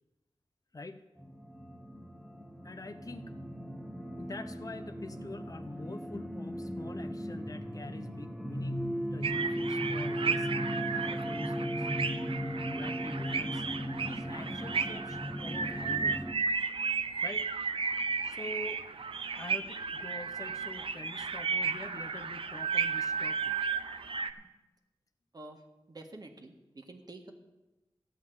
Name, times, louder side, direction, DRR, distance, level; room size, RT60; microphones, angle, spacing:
sound 1, 1.2-16.3, equal, ahead, 0.8 m, -37 dB
voice 1, 2.6-3.3 4.1-10.7 11.0-11.9 12.7-13.6 14.0-16.2 17.2-17.5 17.8-17.9 18.2-18.8 19.3-23.6, left 2 dB, 40° left, 8 dB, 0.8 m, -46 dB
sound 2, 9.2-24.3, right 5 dB, 70° right, 0.6 m, -34 dB
voice 2, 25.9-27.3, right 2 dB, 45° right, 3 dB, 1.6 m, -48 dB
14.0 x 5.3 x 9.4 m, 1.1 s
wide cardioid pair, 95°, 10 cm